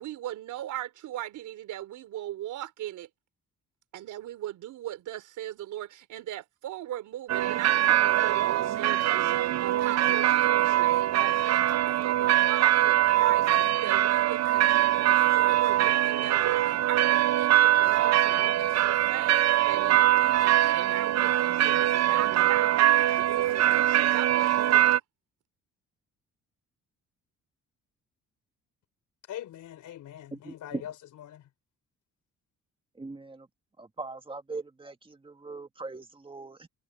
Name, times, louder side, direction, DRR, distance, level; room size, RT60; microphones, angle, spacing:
voice 1, 0.0-3.1 3.9-25.0, right 13 dB, 80° right, 3.9 m, -39 dB
sound 1, 7.3-25.0, right 13 dB, 60° right, 0.6 m, -23 dB
voice 2, 29.3-31.4, left 11 dB, 75° left, 3.9 m, -42 dB
voice 3, 30.3-30.8 33.0-33.5 33.8-36.7, right 3 dB, 15° right, 1.8 m, -40 dB
cardioid pair, 90°, 30 cm